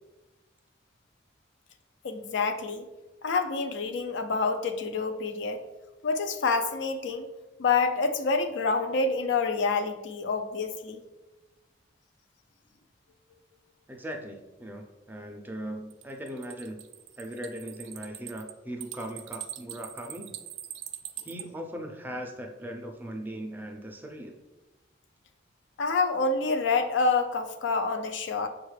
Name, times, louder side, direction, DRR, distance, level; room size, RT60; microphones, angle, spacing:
voice 1, 2.0-2.9 3.2-5.6 6.0-7.3 7.6-11.0 25.8-28.5, left 4 dB, 70° left, 7 dB, 0.4 m, -27 dB
voice 2, 13.9-16.8 17.2-20.3 21.2-24.4, right 1 dB, 10° right, 2 dB, 0.4 m, -39 dB
sound 1, 15.9-21.4, right 12 dB, 85° right, 0.3 m, -42 dB
6.5 x 2.4 x 3.2 m, 1.1 s
head